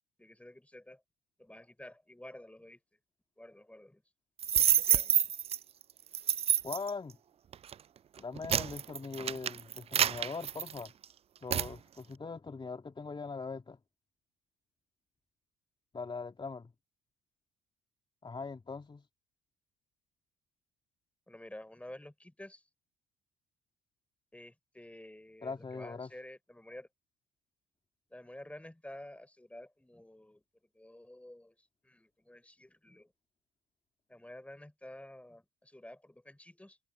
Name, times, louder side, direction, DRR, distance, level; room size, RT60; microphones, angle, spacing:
voice 1, 0.2-1.0 1.4-2.8 3.4-4.0 4.5-5.2 21.3-22.7 24.3-26.9 28.1-30.4 30.7-33.1 34.1-36.8, left 1 dB, 5° left, 5.4 m, -51 dB
sound 1, 4.4-5.6 6.1-6.9 7.5-7.7 8.2-11.0 11.5-11.7, right 9 dB, 30° right, 0.4 m, -28 dB
voice 2, 6.6-7.2 8.2-10.9 11.4-13.8 15.9-16.7 18.2-19.1 25.4-26.1, left 4 dB, 25° left, 2.8 m, -41 dB
figure-of-eight pair, 50°, 21 cm